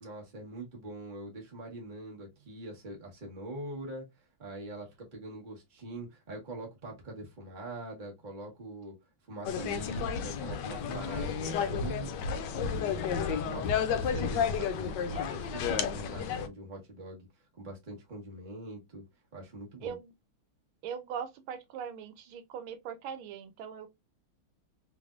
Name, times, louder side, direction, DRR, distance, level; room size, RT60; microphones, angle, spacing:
voice 1, 0.0-4.1 4.4-8.9 9.3-12.1 12.6-17.3 17.6-19.0 19.3-20.0, right 2 dB, 30° right, 1.0 m, -43 dB
sound 1, 9.5-16.5, left 7 dB, 75° left, 1.0 m, -32 dB
voice 2, 19.8-20.1 20.8-23.9, right 7 dB, 85° right, 1.5 m, -40 dB
3.4 x 3.3 x 2.4 m
omnidirectional pair, 2.2 m